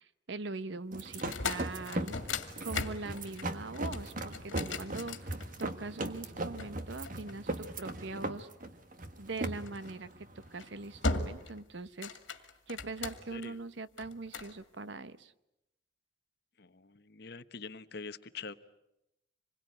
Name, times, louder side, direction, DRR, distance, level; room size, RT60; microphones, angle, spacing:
voice 1, 0.0-2.2 2.6-8.5 9.2-12.4 12.7-15.3, right 3 dB, 65° right, 14 dB, 0.9 m, -42 dB
sound 1, 0.9-11.6, right 2 dB, 45° right, 1.5 m, -39 dB
sound 2, 1.1-5.8 6.6-7.9 9.6-9.9 10.4-10.7 11.0-11.6 11.9-13.5 14.0-14.5, left 3 dB, 75° left, 2.3 m, -38 dB
voice 2, 16.6-18.5, left 5 dB, 55° left, 12 dB, 1.0 m, -45 dB
26.5 x 21.5 x 9.5 m, 0.87 s
head